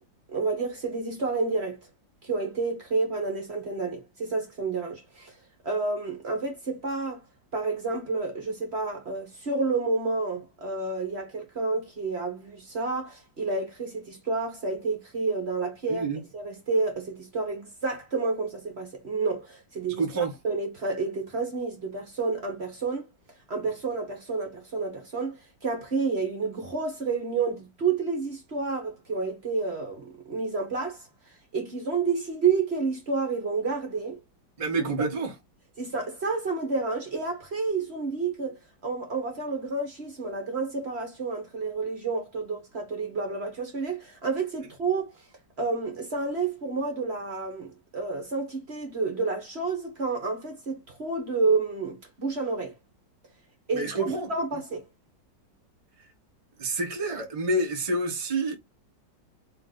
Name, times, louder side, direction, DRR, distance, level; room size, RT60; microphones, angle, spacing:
voice 1, 0.3-1.8 2.2-5.3 5.6-7.2 7.5-16.1 16.3-23.1 23.5-31.1 31.5-34.2 35.0-35.1 35.8-45.1 45.6-52.7 53.7-54.8, right 4 dB, 40° right, 1.2 m, -30 dB
voice 2, 15.9-16.2 20.0-20.3 34.6-35.3 53.7-54.3 56.6-58.6, right 2 dB, 25° right, 1.0 m, -28 dB
3.2 x 3.2 x 3.8 m
omnidirectional pair, 2.0 m